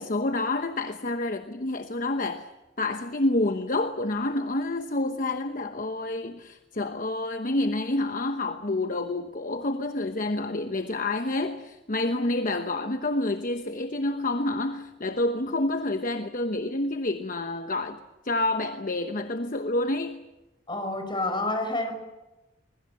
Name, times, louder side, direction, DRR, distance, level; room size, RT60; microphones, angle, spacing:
voice 1, 0.0-2.5 2.8-20.3, left 2 dB, 45° left, 1.0 m, -28 dB
voice 2, 20.7-21.9, left 2 dB, 25° left, 5.1 m, -28 dB
24.0 x 21.5 x 7.8 m
head